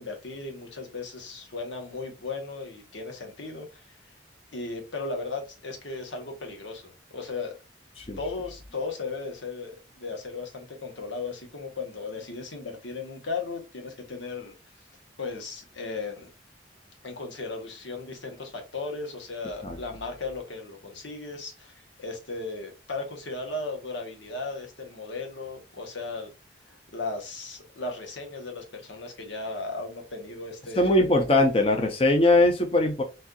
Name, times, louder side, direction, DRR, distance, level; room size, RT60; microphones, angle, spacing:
voice 1, 0.0-3.9 4.5-7.5 8.2-14.5 15.2-16.3 17.0-26.3 26.7-30.9, left 3 dB, 90° left, 3 dB, 1.2 m, -36 dB
voice 2, 30.8-33.0, left 2 dB, 30° left, 3 dB, 0.6 m, -21 dB
4.2 x 2.6 x 2.3 m, 0.28 s
head